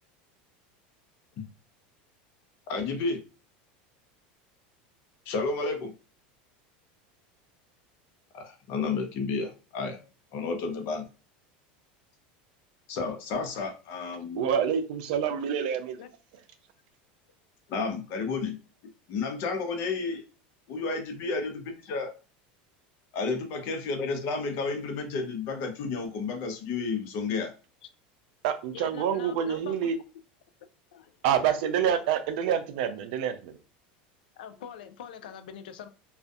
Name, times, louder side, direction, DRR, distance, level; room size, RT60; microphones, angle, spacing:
voice 1, 2.7-3.2 5.3-5.9 8.3-10.0 10.3-11.1 12.9-14.5 17.7-18.6 19.1-20.2 20.7-22.1 23.1-27.5, left 4 dB, 55° left, 0.7 m, -31 dB
voice 2, 14.3-16.0 28.4-30.0 31.2-33.6, right 8 dB, 70° right, 0.4 m, -27 dB
voice 3, 28.7-29.9 30.9-31.2 31.5-31.6 34.4-35.9, left 8 dB, 85° left, 0.4 m, -44 dB
2.5 x 2.4 x 2.3 m
supercardioid pair, 115°, 5 cm